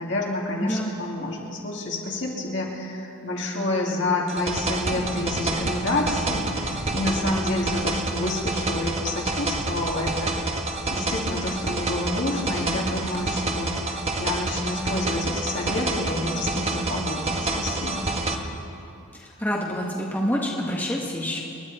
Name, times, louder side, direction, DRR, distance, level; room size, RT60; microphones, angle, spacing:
voice 1, 0.0-10.6 10.9-18.1, left 2 dB, 60° left, -3 dB, 2.8 m, -28 dB
voice 2, 0.6-0.9 19.1-21.4, equal, 10° left, -4 dB, 1.6 m, -27 dB
sound 1, 4.3-18.3, right 2 dB, 30° right, 1.1 m, -28 dB
sound 2, 4.9-13.7 14.0-14.1 14.4-15.4 15.7-15.8, right 1 dB, 55° right, 0.9 m, -41 dB
28.0 x 11.0 x 4.4 m, 2.7 s
head